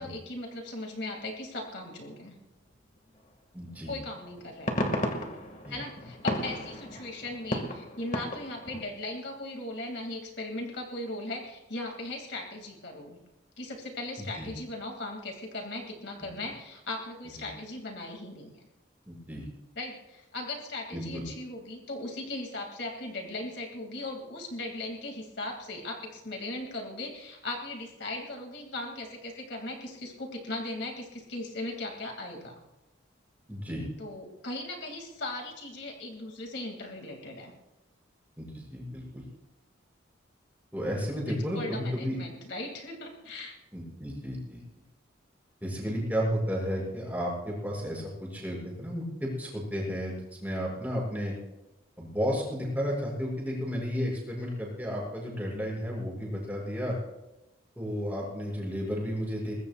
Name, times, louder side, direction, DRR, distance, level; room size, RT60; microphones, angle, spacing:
voice 1, 0.0-2.4 3.9-4.8 5.7-13.2 13.6-18.6 19.8-32.6 34.0-37.5 41.3-43.5, left 2 dB, 60° left, 1 dB, 2.5 m, -38 dB
voice 2, 3.5-4.0 5.6-5.8 14.2-14.5 19.0-19.5 20.9-21.2 33.5-33.9 38.4-39.2 40.7-42.2 43.7-44.6 45.6-51.3 52.0-57.0 57.7-59.5, equal, 10° right, -4 dB, 6.7 m, -33 dB
sound 1, 3.6-3.7 4.2-8.8, left 1 dB, 40° left, 2.0 m, -34 dB
23.5 x 20.5 x 2.5 m, 0.99 s
head